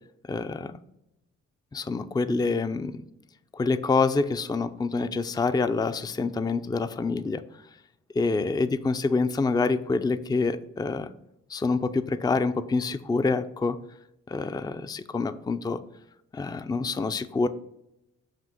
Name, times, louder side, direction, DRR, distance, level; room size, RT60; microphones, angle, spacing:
voice 1, 0.3-0.8 1.7-2.9 3.5-7.4 8.1-11.1 11.5-13.8 14.3-15.8 16.3-17.5, left 4 dB, 15° left, 12 dB, 0.4 m, -26 dB
7.5 x 2.9 x 6.0 m, 0.84 s
supercardioid pair, 60°, 32 cm